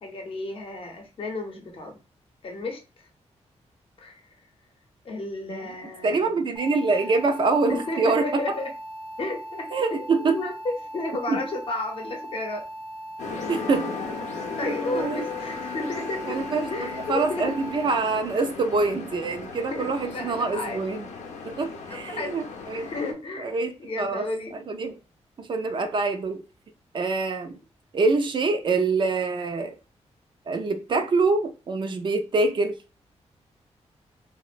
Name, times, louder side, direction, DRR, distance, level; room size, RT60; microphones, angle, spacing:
voice 1, 0.0-2.0 2.4-3.1 4.0-4.2 5.0-6.5 7.7-8.7 9.2-9.8 10.2-12.7 13.3-13.4 14.6-17.7 19.7-20.8 21.9-22.4 22.7-24.6, left 2 dB, 50° left, 0.7 m, -33 dB
voice 2, 6.0-8.5 9.7-10.4 11.3-11.4 13.5-13.9 14.6-15.3 16.3-16.7 17.1-21.1 21.4-22.9 23.4-24.3 24.7-24.9 25.4-26.4 26.9-27.6 27.9-29.8 30.5-32.8, right 3 dB, 45° right, 0.4 m, -25 dB
sound 1, 6.6-18.0, right 1 dB, 15° left, 0.5 m, -39 dB
sound 2, 13.2-23.1, left 4 dB, 90° left, 0.6 m, -36 dB
2.8 x 2.0 x 2.4 m
wide cardioid pair, 150°, 12 cm